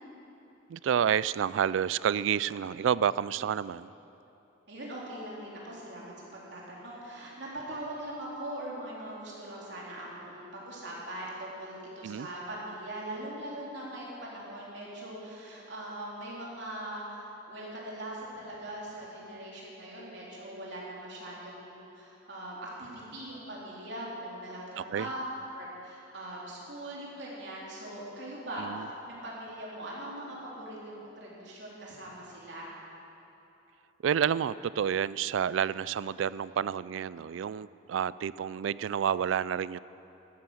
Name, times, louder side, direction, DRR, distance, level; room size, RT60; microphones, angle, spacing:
voice 1, 0.7-3.9 12.0-12.3 24.9-25.1 28.6-28.8 34.0-39.8, right 8 dB, 85° right, 18 dB, 0.3 m, -29 dB
voice 2, 4.7-25.2 25.5-28.7 29.0-32.7, right 1 dB, 65° right, -5 dB, 3.6 m, -41 dB
13.5 x 13.0 x 6.3 m, 2.9 s
head